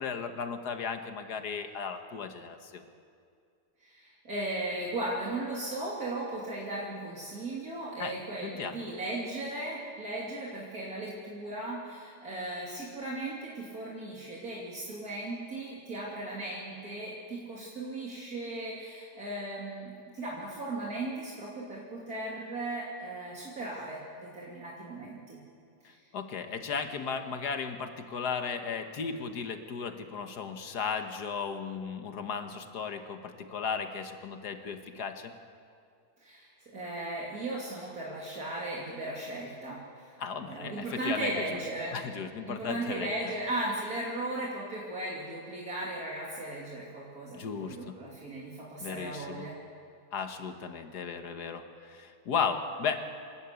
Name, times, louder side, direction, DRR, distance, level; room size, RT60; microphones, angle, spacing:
voice 1, 0.0-2.8 8.0-8.2 8.4-8.9 25.8-35.3 40.2-41.6 41.9-43.1 47.3-48.0 48.8-49.5 50.1-53.0, left 6 dB, 90° left, 7 dB, 1.8 m, -35 dB
voice 2, 3.8-25.4 25.8-26.0 36.2-40.1 40.4-42.0 42.5-49.6, right 2 dB, 65° right, -5 dB, 3.1 m, -37 dB
28.0 x 12.0 x 8.3 m, 2.3 s
omnidirectional pair, 1.7 m